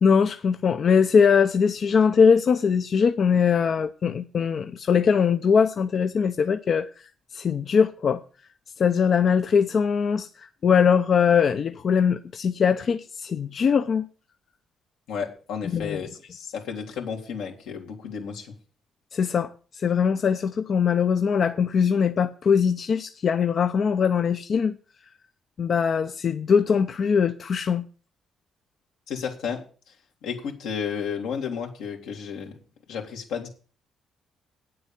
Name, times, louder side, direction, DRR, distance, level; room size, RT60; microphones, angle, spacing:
voice 1, 0.0-6.9 7.3-8.2 8.8-14.0 15.7-16.0 19.1-24.8 25.6-27.9, left 6 dB, 50° left, 0.6 m, -21 dB
voice 2, 15.1-18.5 29.1-29.9 30.2-32.6 32.9-33.5, left 7 dB, 90° left, 2.9 m, -32 dB
9.1 x 7.8 x 7.3 m
cardioid pair, 90°, 0 cm